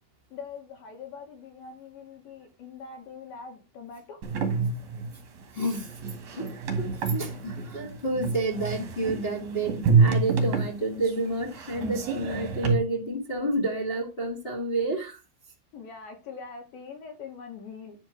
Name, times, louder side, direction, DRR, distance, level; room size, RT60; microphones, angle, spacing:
voice 1, 0.3-4.2 15.7-18.0, left 5 dB, 55° left, 3 dB, 4.0 m, -43 dB
sound 1, 4.2-12.7, right 5 dB, 50° right, 2.9 m, -27 dB
voice 2, 5.5-6.0 6.3-6.5 6.8-15.2, right 2 dB, 30° left, -3 dB, 1.0 m, -30 dB
11.0 x 4.4 x 6.1 m, 0.30 s
omnidirectional pair, 5.2 m